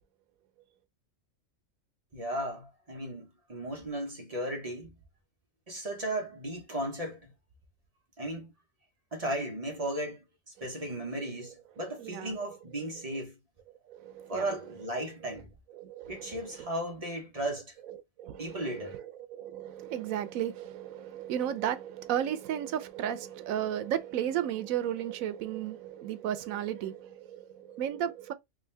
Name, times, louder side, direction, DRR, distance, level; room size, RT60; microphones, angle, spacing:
voice 1, 2.1-4.9 5.7-7.3 8.2-8.5 9.1-13.4 14.3-15.5 16.1-17.7 18.4-19.0, right 1 dB, 30° right, 0.9 m, -35 dB
voice 2, 11.8-12.4 13.9-14.5 15.7-16.7 17.9-28.3, right 10 dB, 85° right, 1.0 m, -34 dB
3.6 x 2.8 x 3.2 m
omnidirectional pair, 1.4 m